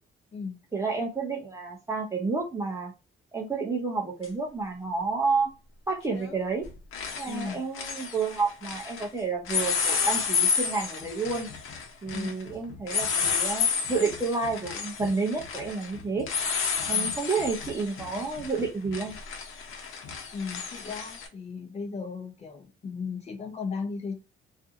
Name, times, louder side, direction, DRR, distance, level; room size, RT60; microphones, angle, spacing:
voice 1, 0.7-2.9 3.3-5.5 5.9-6.7 7.2-11.5 12.0-16.3 16.9-19.2, right 4 dB, 15° right, 0 dB, 0.5 m, -30 dB
sound 1, 4.2-4.3 6.1-6.4 6.6-9.1 9.4-21.3, left 6 dB, 70° left, 0.8 m, -31 dB
voice 2, 7.2-7.6 12.1-12.3 16.9-17.2 20.3-24.2, left 5 dB, 30° left, 4 dB, 0.7 m, -36 dB
2.5 x 2.5 x 2.5 m, 0.30 s
cardioid pair, 175°, 21 cm